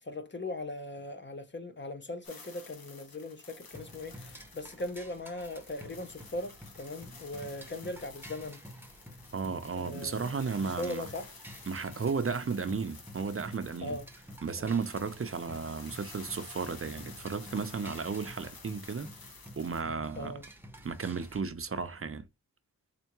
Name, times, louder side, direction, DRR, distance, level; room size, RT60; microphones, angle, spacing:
voice 1, 0.0-8.6 9.7-11.3 13.8-14.1 14.6-14.7 20.2-20.4, left 2 dB, 30° left, 0.8 m, -39 dB
sound 1, 2.2-19.8, left 4 dB, 80° left, 1.2 m, -52 dB
sound 2, 3.7-21.4, equal, 5° right, 0.8 m, -50 dB
voice 2, 9.3-11.1 11.7-14.0 14.4-19.1 19.6-20.3 20.8-22.3, right 5 dB, 40° right, 0.6 m, -34 dB
3.7 x 3.4 x 3.0 m
wide cardioid pair, 100°, 35 cm